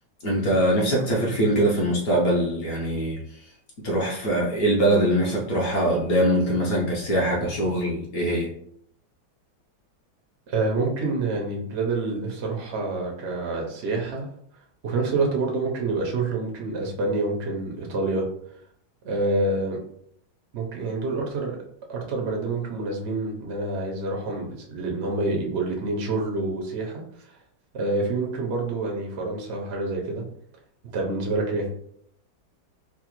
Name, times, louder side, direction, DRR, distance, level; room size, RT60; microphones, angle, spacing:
voice 1, 0.2-3.2 3.8-8.5, right 1 dB, 60° left, -3 dB, 1.0 m, -22 dB
voice 2, 10.5-14.3 14.8-18.3 19.0-19.8 20.5-21.6 21.9-27.3 27.7-30.2 30.9-31.7, right 3 dB, 80° right, 0 dB, 0.6 m, -27 dB
4.9 x 2.1 x 3.0 m, 0.70 s
omnidirectional pair, 2.2 m